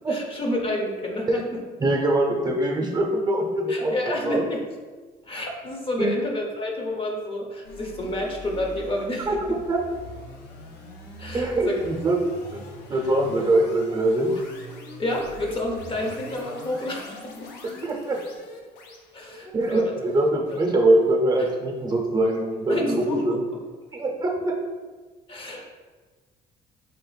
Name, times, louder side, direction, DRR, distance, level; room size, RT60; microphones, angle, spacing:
voice 1, 0.0-1.6 3.7-4.6 5.3-9.4 11.2-11.8 12.9-13.0 13.4-13.5 15.0-17.5 19.1-19.9 22.7-23.6 25.3-25.7, left 1 dB, 30° left, 1 dB, 0.7 m, -29 dB
voice 2, 1.8-3.9 4.2-4.4 6.0-6.1 9.3-9.4 9.7-9.8 11.3-12.2 12.5-12.6 12.9-14.3 17.8-18.2 19.5-23.4 23.9-24.5, right 1 dB, 25° right, 0 dB, 0.7 m, -23 dB
sound 1, 7.6-22.8, left 2 dB, 85° left, 0.7 m, -42 dB
3.9 x 2.5 x 4.0 m, 1.4 s
cardioid pair, 110°, 17 cm